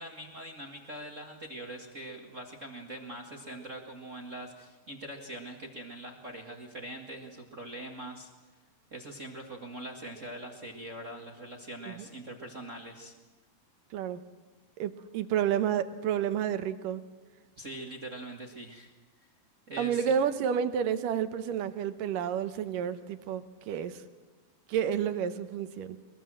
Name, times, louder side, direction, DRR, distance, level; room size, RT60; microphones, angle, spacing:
voice 1, 0.0-8.3 8.9-13.1 17.6-18.9 19.7-20.0, right 1 dB, 35° right, 2 dB, 1.2 m, -43 dB
voice 2, 13.9-14.2 14.8-17.0 19.8-24.0 24.7-26.0, right 8 dB, 70° right, 11 dB, 2.4 m, -30 dB
23.0 x 22.5 x 7.6 m, 1.2 s
omnidirectional pair, 4.4 m